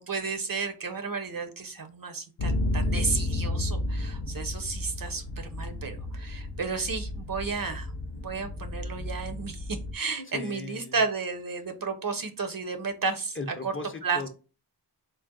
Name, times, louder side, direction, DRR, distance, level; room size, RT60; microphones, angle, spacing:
voice 1, 0.0-5.2 5.5-9.7 9.9-13.4 13.6-13.7 14.0-14.2, right 4 dB, 50° right, 6 dB, 0.6 m, -32 dB
sound 1, 2.4-9.9, left 1 dB, 75° left, 0.7 m, -32 dB
voice 2, 10.2-11.0 13.3-14.3, left 3 dB, 30° left, 5 dB, 0.6 m, -37 dB
3.9 x 2.1 x 3.7 m, 0.33 s
wide cardioid pair, 65°, 44 cm